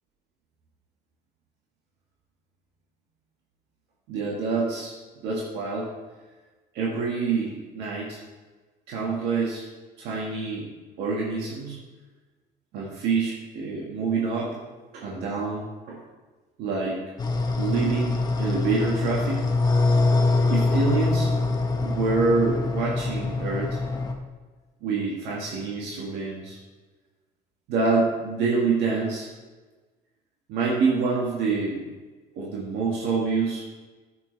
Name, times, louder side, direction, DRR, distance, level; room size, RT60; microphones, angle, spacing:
voice 1, 4.1-4.9 5.2-5.9 6.7-8.2 8.9-9.7 10.0-10.7 11.0-11.8 12.7-14.5 14.9-16.0 16.6-17.0 17.6-18.1 18.4-19.4 20.5-21.3 21.8-23.8 24.8-26.6 27.7-29.3 30.5-31.8 32.3-33.6, right 4 dB, 85° right, -4 dB, 1.9 m, -26 dB
sound 1, 17.2-24.1, left 3 dB, 25° left, 1.0 m, -24 dB
9.9 x 8.2 x 3.4 m, 1.3 s
cardioid pair, 110°, 17 cm